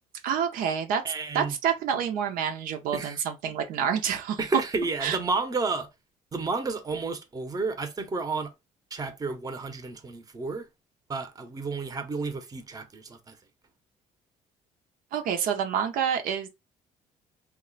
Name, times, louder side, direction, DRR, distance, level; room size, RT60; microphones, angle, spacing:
voice 1, 0.2-1.0 1.3-4.4 5.0-5.2 15.1-16.5, right 8 dB, 75° right, 0.5 m, -28 dB
voice 2, 1.0-1.5 2.9-3.2 4.4-5.9 6.3-8.5 8.9-10.7 11.1-13.4, right 3 dB, 25° right, 0.7 m, -31 dB
2.4 x 2.1 x 3.8 m
cardioid pair, 90°, 15 cm